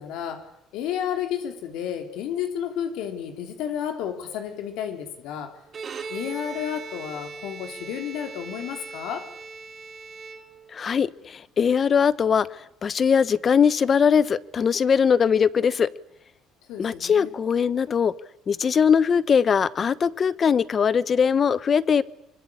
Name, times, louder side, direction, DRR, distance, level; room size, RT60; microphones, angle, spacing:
voice 1, 0.0-5.6 6.1-9.3 16.7-17.3, left 9 dB, 75° left, 3.7 m, -32 dB
Bowed string instrument, 5.7-10.9, right 5 dB, 30° right, 3.3 m, -39 dB
voice 2, 10.7-12.5 12.8-15.9 16.8-18.1 18.5-22.0, left 7 dB, 30° left, 1.0 m, -21 dB
25.5 x 24.5 x 8.7 m
cardioid pair, 135°, 0 cm